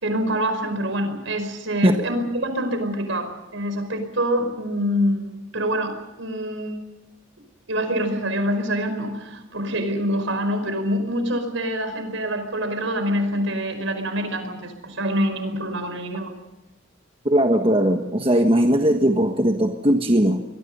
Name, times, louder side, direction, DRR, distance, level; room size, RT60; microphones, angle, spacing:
voice 1, 0.0-6.8 7.7-16.3, equal, 70° right, 8 dB, 5.1 m, -25 dB
voice 2, 17.2-20.4, right 1 dB, 25° right, 4 dB, 1.4 m, -19 dB
27.5 x 22.5 x 5.5 m, 1.0 s
head